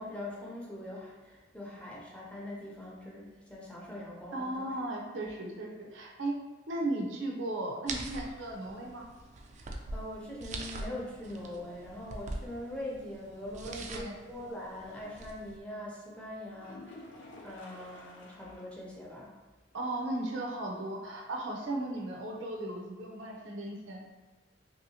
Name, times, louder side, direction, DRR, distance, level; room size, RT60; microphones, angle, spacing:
voice 1, 0.0-4.7 9.9-17.1 17.4-19.4, left 1 dB, 5° left, -5 dB, 0.6 m, -42 dB
voice 2, 4.3-6.3 6.7-9.1 13.6-14.2 19.7-24.0, right 1 dB, 80° right, 0 dB, 0.6 m, -36 dB
sound 1, 7.9-15.6, right 2 dB, 40° right, 0.3 m, -43 dB
sound 2, 16.6-18.8 19.2-19.3 19.7-19.8 23.6-23.7, left 1 dB, 80° left, 0.6 m, -51 dB
3.0 x 2.7 x 2.8 m, 1.2 s
head